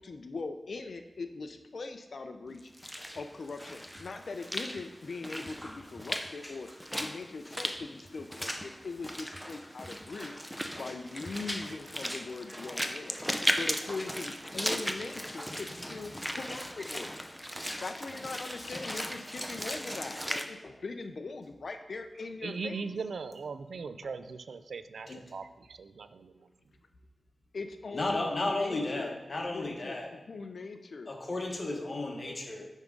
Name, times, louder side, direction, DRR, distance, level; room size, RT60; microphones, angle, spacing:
voice 1, 0.0-2.6 3.1-10.3 10.8-13.2 13.5-17.1 17.8-22.8 27.5-29.2 29.5-31.1, left 3 dB, 65° left, 7 dB, 0.5 m, -41 dB
Walk footsteps / Splash splatter, 2.6-20.4, equal, ahead, 0.6 m, -37 dB
voice 2, 22.4-26.5, right 5 dB, 85° right, 11 dB, 0.4 m, -40 dB
voice 3, 27.9-30.2 31.1-32.6, left 2 dB, 40° left, 1 dB, 1.3 m, -34 dB
9.4 x 3.6 x 5.2 m, 1.1 s
wide cardioid pair, 95°, 0 cm